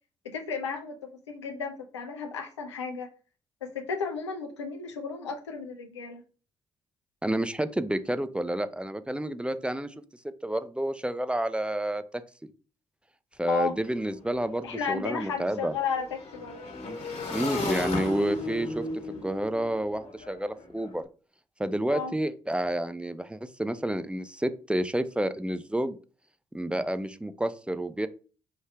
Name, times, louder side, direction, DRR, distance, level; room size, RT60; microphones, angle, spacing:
voice 1, 0.2-3.1 3.6-6.2 13.5-13.7 14.6-16.6 21.9-22.1, left 5 dB, 90° left, 4 dB, 0.5 m, -33 dB
voice 2, 7.2-9.9 10.4-12.0 13.4-15.7 17.3-18.9 19.2-21.0 21.6-26.0 26.5-28.1, right 1 dB, 5° right, 11 dB, 0.5 m, -29 dB
Motorcycle / Engine, 13.4-13.5 13.8-20.9, left 2 dB, 55° left, 1.6 m, -36 dB
4.9 x 2.7 x 3.3 m, 0.37 s
hypercardioid pair, 40°, 14 cm